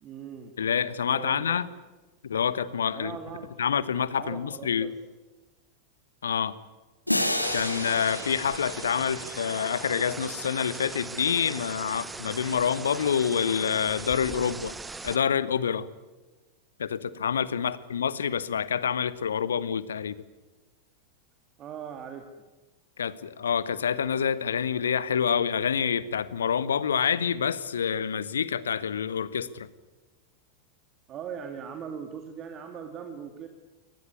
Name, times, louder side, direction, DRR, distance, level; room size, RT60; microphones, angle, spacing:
voice 1, 0.0-0.5 1.0-1.6 2.9-3.6 4.2-4.9 17.6-17.7 21.6-22.4 31.1-33.5, right 7 dB, 30° right, 6 dB, 2.1 m, -40 dB
voice 2, 0.6-1.7 2.2-3.2 3.6-4.9 6.2-6.6 7.5-14.7 15.0-15.9 16.8-20.2 23.0-29.7, left 7 dB, 65° left, 18 dB, 1.1 m, -27 dB
sound 1, 7.1-9.9, left 1 dB, 85° left, 2.1 m, -31 dB
sound 2, 7.4-15.2, right 3 dB, 10° right, 0.7 m, -39 dB
23.5 x 19.5 x 9.7 m, 1.2 s
figure-of-eight pair, 90°, 0 cm